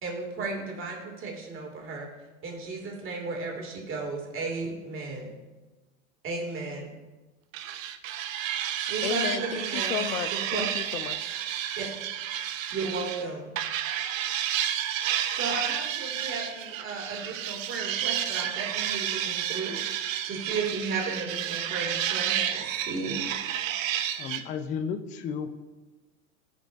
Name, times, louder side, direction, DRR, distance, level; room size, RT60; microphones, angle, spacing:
voice 1, 0.0-2.1 2.4-5.3 6.2-6.9 8.9-10.0 10.3-10.6 11.8-11.9 12.7-13.5 15.3-19.8 20.2-23.2, right 4 dB, 30° right, 0 dB, 2.2 m, -34 dB
sound 1, 7.5-13.2 13.6-24.4, right 10 dB, 65° right, 0.7 m, -31 dB
voice 2, 9.0-11.3, left 10 dB, 75° left, 12 dB, 0.7 m, -33 dB
voice 3, 24.2-25.5, left 6 dB, 20° left, 9 dB, 0.4 m, -33 dB
15.0 x 5.0 x 2.5 m, 1.2 s
hypercardioid pair, 100°, 43 cm